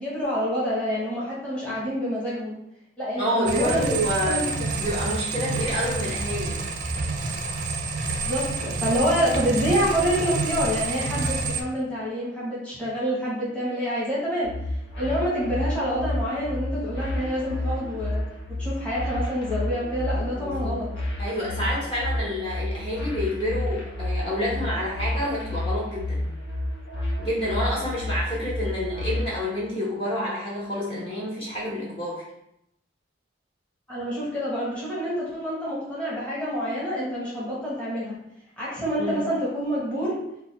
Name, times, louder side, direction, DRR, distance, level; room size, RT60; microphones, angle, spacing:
voice 1, 0.0-2.5 3.0-4.0 4.3-4.5 8.2-18.2 18.5-20.9 33.9-38.2 38.6-40.2, equal, 5° left, -8 dB, 1.2 m, -27 dB
voice 2, 3.2-4.5 4.7-6.6 20.4-20.8 21.2-26.3 27.2-32.2 39.0-39.2, equal, 30° left, -7 dB, 1.1 m, -28 dB
sound 1, 3.4-11.6, right 3 dB, 40° right, 0.5 m, -28 dB
sound 2, 14.4-29.2, left 1 dB, 75° left, 1.3 m, -30 dB
4.1 x 2.3 x 4.0 m, 0.80 s
head